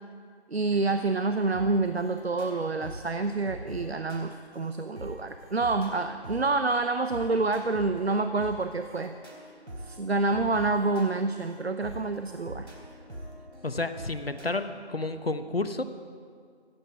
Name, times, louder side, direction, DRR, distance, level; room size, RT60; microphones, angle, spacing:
voice 1, 0.5-9.1 9.8-12.7, right 3 dB, 70° right, 9 dB, 0.7 m, -28 dB
sound 1, 1.5-14.5, right 1 dB, 85° right, 3.7 m, -44 dB
voice 2, 13.6-15.8, left 2 dB, 60° left, 10 dB, 1.0 m, -31 dB
15.0 x 8.1 x 9.2 m, 2.1 s
figure-of-eight pair, 180°, 33 cm